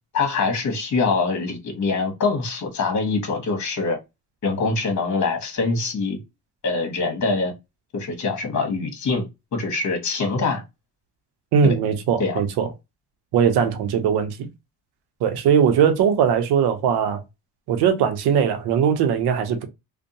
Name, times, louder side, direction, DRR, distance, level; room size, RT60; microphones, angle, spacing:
voice 1, 0.1-4.0 4.4-6.2 6.6-7.5 7.9-9.2 9.5-10.6 11.6-11.7 12.2-12.4, left 4 dB, 45° left, 1.2 m, -24 dB
voice 2, 11.5-12.7 13.3-14.5 15.2-17.2 17.7-19.7, right 7 dB, 80° right, 0.7 m, -20 dB
2.6 x 2.2 x 2.6 m
cardioid pair, 80°, 39 cm